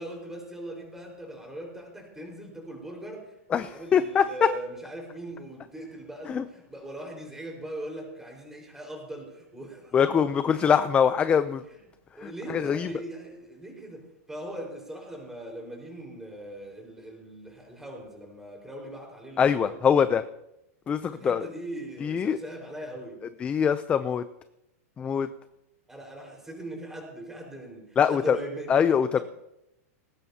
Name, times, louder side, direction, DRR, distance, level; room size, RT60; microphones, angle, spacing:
voice 1, 0.0-10.3 10.5-10.6 12.1-19.7 21.1-23.2 25.9-28.8, right 1 dB, 5° right, 0 dB, 4.6 m, -40 dB
voice 2, 3.5-4.5 6.3-6.4 9.9-11.6 12.2-12.9 19.4-20.2 20.9-21.5 22.0-22.4 23.4-24.2 25.0-25.3 28.0-28.4 28.7-29.2, left 7 dB, 15° left, 12 dB, 0.4 m, -23 dB
19.5 x 18.0 x 2.8 m, 0.86 s
supercardioid pair, 155°, 8 cm